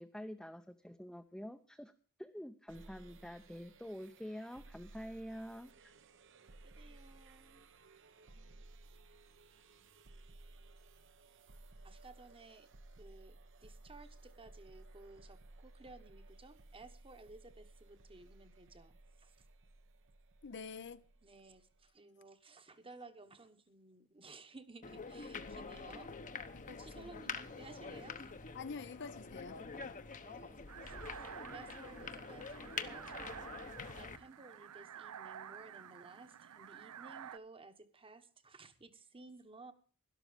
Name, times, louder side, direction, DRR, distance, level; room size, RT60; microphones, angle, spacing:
voice 1, 0.0-1.9 2.2-5.9, equal, ahead, 0.7 m, -47 dB
sound 1, 2.7-21.9, right 2 dB, 60° right, 1.0 m, -58 dB
voice 2, 6.4-7.7 11.8-12.7 13.0-19.4 21.2-26.1 26.7-28.3 30.1-33.5 33.9-39.7, right 3 dB, 25° right, 1.2 m, -56 dB
voice 3, 20.4-21.0 25.3-25.7 26.5-27.3 28.5-29.6, left 5 dB, 55° left, 0.7 m, -48 dB
sound 2, 24.8-34.2, left 5 dB, 35° left, 1.0 m, -46 dB
sound 3, 30.7-37.4, right 9 dB, 85° right, 0.5 m, -51 dB
12.5 x 12.0 x 5.1 m
head